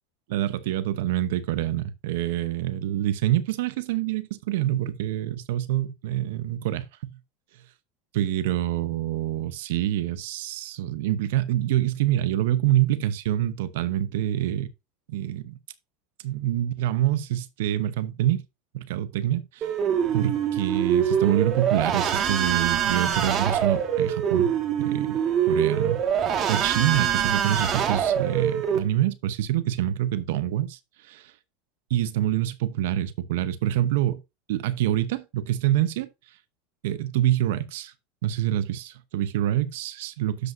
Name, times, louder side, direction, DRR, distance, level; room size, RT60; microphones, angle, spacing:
voice 1, 0.3-7.1 8.1-14.7 15.1-15.6 16.2-18.4 18.7-19.7 20.1-24.5 24.8-25.2 25.5-26.0 26.5-30.8 31.1-31.3 31.9-34.2 34.5-36.1 36.8-37.9 38.2-40.5, right 12 dB, 75° right, 0.8 m, -26 dB
sound 1, 19.6-28.8, right 8 dB, 40° right, 1.7 m, -24 dB
12.5 x 5.3 x 2.6 m
supercardioid pair, 115°, 0 cm